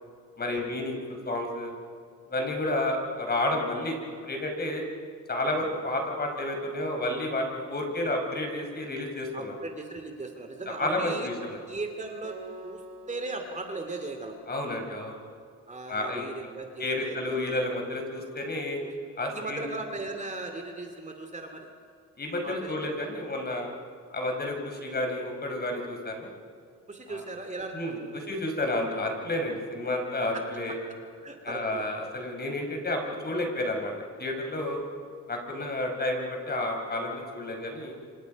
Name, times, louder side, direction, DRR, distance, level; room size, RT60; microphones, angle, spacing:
voice 1, 0.4-1.7 2.3-4.8 5.3-9.5 10.8-11.6 14.5-15.1 15.9-16.3 16.8-18.8 19.2-19.7 22.2-23.7 24.1-26.3 27.1-27.2 27.7-30.8 31.4-33.9 34.2-34.8 35.3-37.9, left 1 dB, 30° left, 3 dB, 5.2 m, -31 dB
voice 2, 9.3-11.3 11.7-12.4 12.6-12.8 13.1-14.8 15.7-17.5 18.8-18.9 19.3-21.7 22.4-22.9 26.9-28.3 30.3-30.4 31.2-31.9 34.6-34.8, right 3 dB, 25° right, 5 dB, 2.6 m, -38 dB
Acoustic guitar, 12.2-15.5, right 2 dB, 45° right, 6.2 m, -47 dB
27.0 x 26.5 x 5.3 m, 2.2 s
cardioid pair, 90°, 30 cm